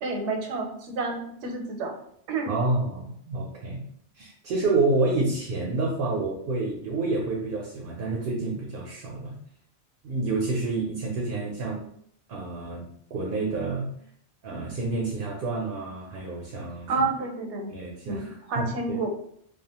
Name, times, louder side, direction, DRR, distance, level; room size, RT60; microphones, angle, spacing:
voice 1, 0.0-2.0 2.3-2.5 16.9-17.7 18.0-19.1, right 3 dB, 85° right, 3 dB, 0.9 m, -29 dB
voice 2, 2.5-3.8 4.2-9.4 10.0-11.9 12.3-13.9 14.4-16.9 17.7-18.3 18.6-19.0, right 3 dB, 65° right, -1 dB, 0.7 m, -28 dB
2.4 x 2.3 x 2.8 m, 0.68 s
omnidirectional pair, 1.1 m